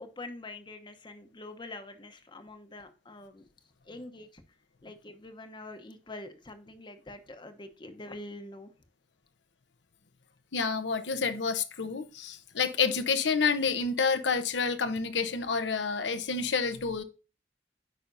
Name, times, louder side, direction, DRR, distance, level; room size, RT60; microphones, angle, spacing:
voice 1, 0.0-3.5 3.8-4.4 4.8-8.7, left 2 dB, 25° left, 0.9 m, -45 dB
voice 2, 10.5-17.0, left 5 dB, 90° left, 0.9 m, -29 dB
9.2 x 5.5 x 2.6 m
head